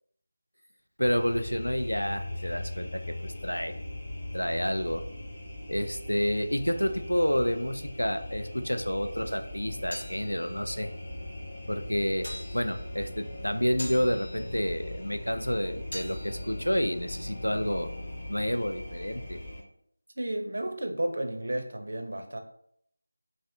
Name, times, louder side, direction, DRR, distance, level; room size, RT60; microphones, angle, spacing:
voice 1, 1.0-3.7 4.3-5.0 5.7-10.9 11.7-12.3 12.5-17.9 18.3-19.4, equal, 85° left, 8 dB, 0.3 m, -29 dB
sound 1, 1.0-19.6, left 1 dB, 20° left, 0.8 m, -39 dB
sound 2, 9.5-18.1, left 1 dB, 65° left, 0.8 m, -47 dB
voice 2, 20.2-22.4, right 1 dB, 55° right, 5 dB, 0.4 m, -32 dB
3.1 x 2.6 x 2.5 m, 0.68 s
figure-of-eight pair, 165°, 0 cm